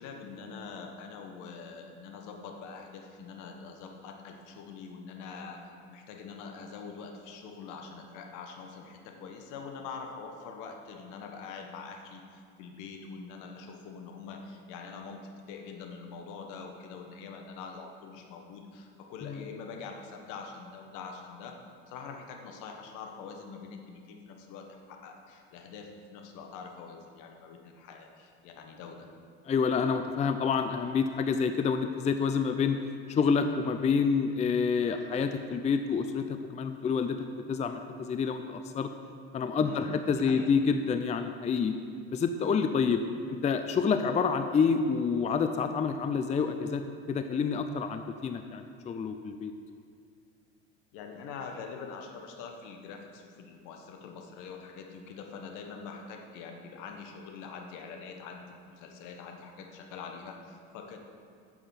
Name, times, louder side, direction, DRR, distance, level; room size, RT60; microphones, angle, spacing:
voice 1, 0.0-21.6 21.9-29.1 39.6-40.5 50.9-61.0, left 5 dB, 65° left, 3 dB, 1.4 m, -44 dB
voice 2, 29.5-32.8 33.1-38.9 39.3-41.7 42.1-43.0 43.3-46.8 47.1-49.5, left 5 dB, 20° left, 8 dB, 0.5 m, -28 dB
8.5 x 7.1 x 5.8 m, 2.2 s
hypercardioid pair, 75°, 33 cm